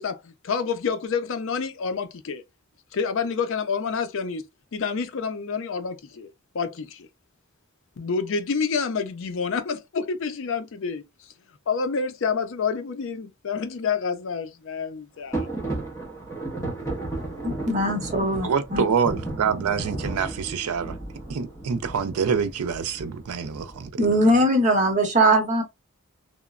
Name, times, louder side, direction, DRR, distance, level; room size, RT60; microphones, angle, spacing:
voice 1, 0.0-2.4 2.9-4.4 4.7-6.3 6.5-7.1 8.0-11.0 11.7-15.5, left 5 dB, 60° left, 0.4 m, -28 dB
sound 1, 15.3-23.9, right 2 dB, 15° left, 0.7 m, -34 dB
voice 2, 17.4-18.8 24.0-25.6, right 1 dB, 35° right, 0.8 m, -21 dB
voice 3, 18.4-21.0 21.3-24.0, right 6 dB, 85° right, 0.4 m, -26 dB
3.0 x 2.0 x 2.4 m
head